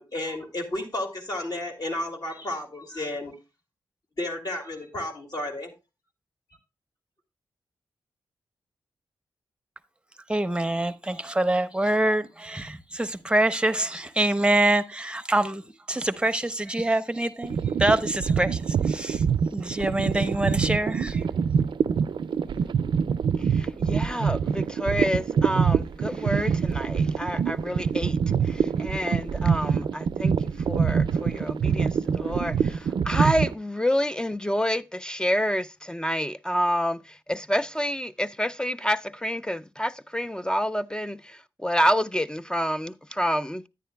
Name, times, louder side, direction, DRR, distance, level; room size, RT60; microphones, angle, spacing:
voice 1, 0.0-3.4 4.2-5.7, left 1 dB, 50° left, 2.3 m, -32 dB
voice 2, 10.3-15.6 15.9-19.2 19.5-21.2, right 1 dB, 10° right, 0.7 m, -25 dB
sound 1, 17.4-33.5, right 6 dB, 70° right, 0.4 m, -25 dB
voice 3, 23.6-28.2 28.5-30.3 30.7-32.8 33.1-37.0 37.3-41.2 41.6-43.6, equal, 10° left, 0.3 m, -28 dB
10.0 x 9.2 x 2.2 m
cardioid pair, 60°, 8 cm